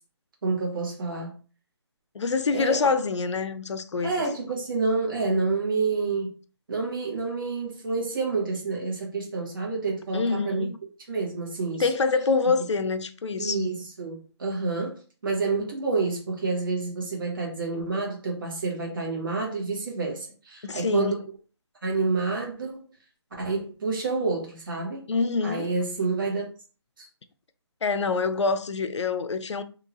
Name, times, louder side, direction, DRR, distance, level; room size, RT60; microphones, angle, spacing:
voice 1, 0.4-1.3 2.5-2.8 4.0-6.4 6.7-10.7 11.1-11.9 13.4-21.2 21.8-22.8 23.4-25.0 25.4-26.5 27.0-27.1, right 4 dB, 50° right, 1.2 m, -28 dB
voice 2, 2.1-4.2 10.1-10.8 11.8-13.7 20.6-21.2 25.1-25.7 27.8-29.6, left 4 dB, 90° left, 0.4 m, -26 dB
2.9 x 2.7 x 2.5 m
hypercardioid pair, 170°, 15 cm